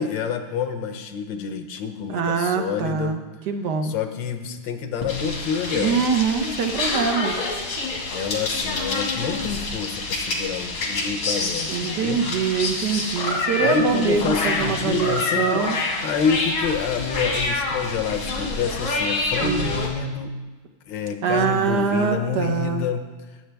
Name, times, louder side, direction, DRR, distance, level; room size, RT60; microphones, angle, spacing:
voice 1, 0.0-3.2 3.8-6.1 7.9-12.2 13.6-15.7 16.0-20.4 20.9-23.0, left 6 dB, 70° left, 7 dB, 1.5 m, -27 dB
voice 2, 2.1-3.2 3.5-3.9 5.7-7.5 11.7-15.8 19.4-19.7 21.2-22.8, right 6 dB, 60° right, 6 dB, 1.4 m, -24 dB
sound 1, 5.0-19.9, left 3 dB, 85° left, 2.7 m, -27 dB
19.5 x 7.8 x 3.4 m, 1.2 s
omnidirectional pair, 2.2 m